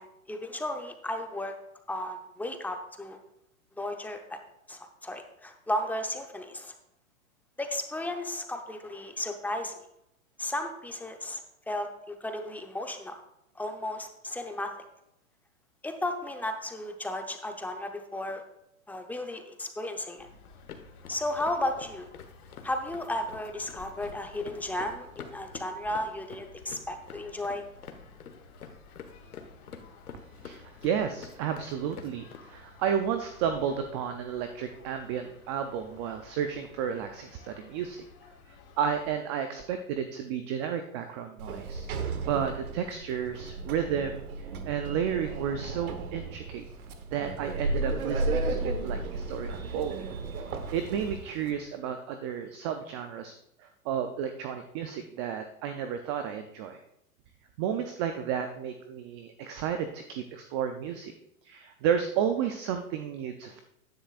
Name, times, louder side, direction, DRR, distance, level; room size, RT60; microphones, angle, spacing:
voice 1, 0.0-1.6 1.9-3.2 3.8-4.4 4.7-6.7 7.6-9.7 10.4-13.2 13.6-14.7 15.8-18.4 18.9-20.3 21.1-22.1 22.6-27.6, left 1 dB, 5° left, 5 dB, 0.7 m, -34 dB
sound 1, 20.2-39.1, left 4 dB, 45° left, 3.1 m, -54 dB
sound 2, 20.4-32.4, left 6 dB, 90° left, 1.4 m, -48 dB
voice 2, 30.4-38.0 38.5-41.9 42.3-46.7 47.1-50.1 50.4-53.3 53.6-56.8 57.6-61.1 61.4-63.6, right 8 dB, 20° right, 7 dB, 0.4 m, -32 dB
Sliding door, 41.4-51.5, right 3 dB, 80° right, 1.4 m, -34 dB
14.0 x 10.5 x 2.4 m, 0.81 s
hypercardioid pair, 125°, 43 cm